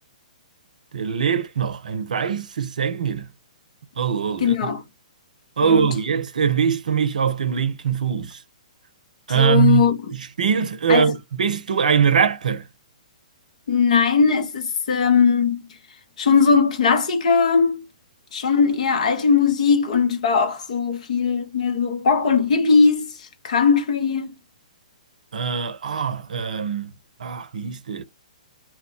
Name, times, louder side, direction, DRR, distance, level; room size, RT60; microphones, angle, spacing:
voice 1, 0.9-3.3 4.0-4.7 5.6-8.4 9.3-12.7 25.3-26.9 27.2-28.0, right 7 dB, 70° right, 0.5 m, -22 dB
voice 2, 4.4-4.8 5.6-5.9 9.3-10.0 10.9-11.1 13.7-15.6 16.2-17.8 18.3-23.1 23.4-24.3, left 5 dB, 60° left, 0.8 m, -19 dB
2.2 x 2.1 x 3.7 m
hypercardioid pair, 125°, 4 cm